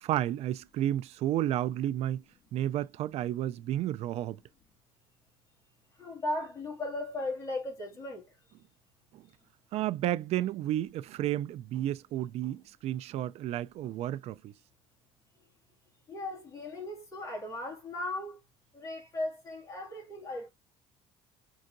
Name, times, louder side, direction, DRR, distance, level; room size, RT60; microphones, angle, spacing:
voice 1, 0.0-2.2 2.5-4.4 9.1-9.2 9.7-14.5, right 12 dB, 60° right, 0.4 m, -32 dB
voice 2, 6.0-8.3 16.1-18.4 18.7-20.5, left 2 dB, 25° left, 2.2 m, -37 dB
5.4 x 3.8 x 2.6 m
cardioid pair, 130°, 12 cm